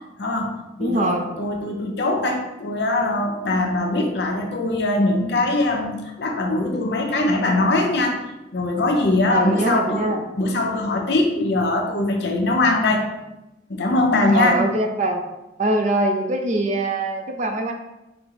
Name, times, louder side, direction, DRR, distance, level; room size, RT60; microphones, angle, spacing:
voice 1, 0.2-8.2 8.5-13.1 13.7-14.7, left 2 dB, 65° left, 2 dB, 0.7 m, -22 dB
voice 2, 0.8-1.3 9.3-10.2 14.3-15.2 15.6-17.7, right 2 dB, 40° right, 5 dB, 0.4 m, -22 dB
5.1 x 2.0 x 4.7 m, 0.99 s
head